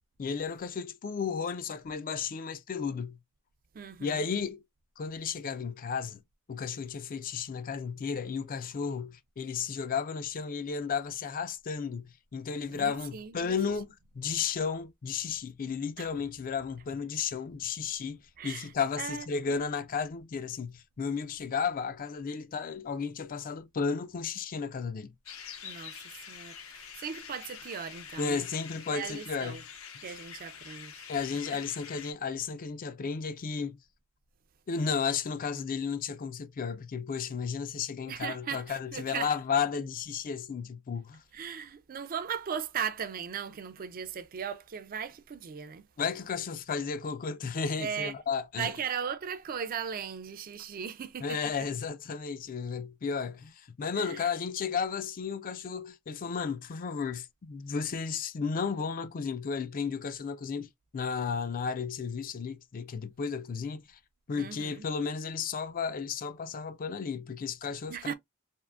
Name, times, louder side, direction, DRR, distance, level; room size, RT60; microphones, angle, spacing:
voice 1, 0.2-3.2 4.0-4.6 5.0-6.2 6.5-18.2 18.4-25.1 28.2-29.6 31.1-33.8 34.7-41.2 46.0-48.7 51.2-64.0 64.3-68.1, left 6 dB, 40° left, 0.4 m, -33 dB
voice 2, 3.7-4.2 12.7-13.7 16.0-16.1 18.4-18.7 19.0-19.7 25.6-28.5 28.9-29.6 30.0-31.1 31.3-31.4 38.1-39.3 41.3-45.9 47.8-48.1 48.6-51.4 54.0-54.3 64.3-64.9 67.9-68.1, right 7 dB, 45° right, 0.4 m, -38 dB
sound 1, 25.3-32.1, left 7 dB, 80° left, 0.8 m, -46 dB
3.6 x 2.5 x 2.3 m
head